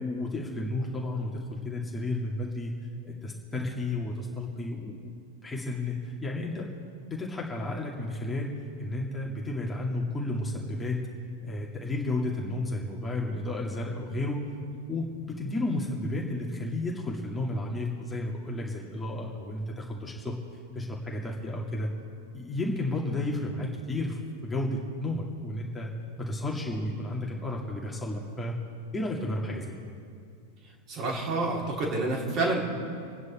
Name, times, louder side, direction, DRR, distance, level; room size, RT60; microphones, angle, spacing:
voice 1, 0.0-2.7 3.0-5.0 5.4-6.7 7.1-8.5 8.8-11.0 11.4-14.4 14.9-20.4 20.7-21.9 22.3-25.9 26.2-28.6 28.9-29.8, left 2 dB, 10° left, -2 dB, 2.4 m, -32 dB
voice 2, 30.9-32.6, right 2 dB, 35° right, -2 dB, 3.3 m, -28 dB
27.0 x 9.5 x 4.4 m, 2.3 s
figure-of-eight pair, 90°, 0 cm